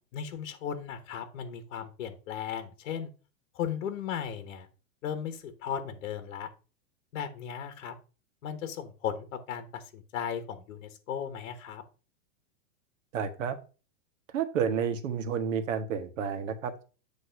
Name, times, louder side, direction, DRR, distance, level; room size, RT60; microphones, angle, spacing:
voice 1, 0.1-3.1 3.5-4.7 5.0-6.5 7.1-7.9 8.4-11.8, left 8 dB, 65° left, 9 dB, 1.2 m, -36 dB
voice 2, 13.1-13.6 14.3-16.8, right 7 dB, 70° right, 9 dB, 1.2 m, -30 dB
8.2 x 3.1 x 5.6 m, 0.35 s
supercardioid pair, 165°, 40 cm